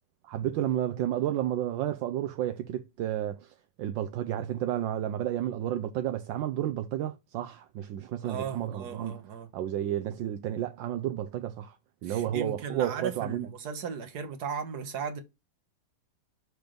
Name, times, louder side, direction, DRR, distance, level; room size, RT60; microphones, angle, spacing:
voice 1, 0.3-9.2 9.5-11.7 12.0-13.5, right 11 dB, 75° right, 1.3 m, -31 dB
voice 2, 8.2-9.5 12.0-15.2, right 6 dB, 55° right, 1.7 m, -36 dB
6.5 x 3.5 x 5.9 m
omnidirectional pair, 2.1 m